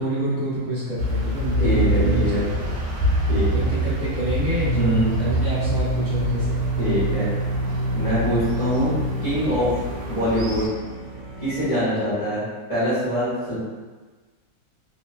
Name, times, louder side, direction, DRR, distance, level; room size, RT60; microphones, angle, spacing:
voice 1, 0.0-2.7 3.5-6.7, equal, 55° right, -10 dB, 0.7 m, -27 dB
sound 1, 1.0-10.7, equal, 85° right, 1.2 m, -26 dB
voice 2, 1.6-2.4 3.3-3.7 4.7-5.1 6.8-7.3 7.9-9.8 10.1-10.7 11.4-13.6, equal, 25° left, -12 dB, 0.9 m, -24 dB
sound 2, 4.6-11.7, right 3 dB, 5° right, 0.8 m, -28 dB
2.9 x 2.2 x 2.3 m, 1.3 s
omnidirectional pair, 1.7 m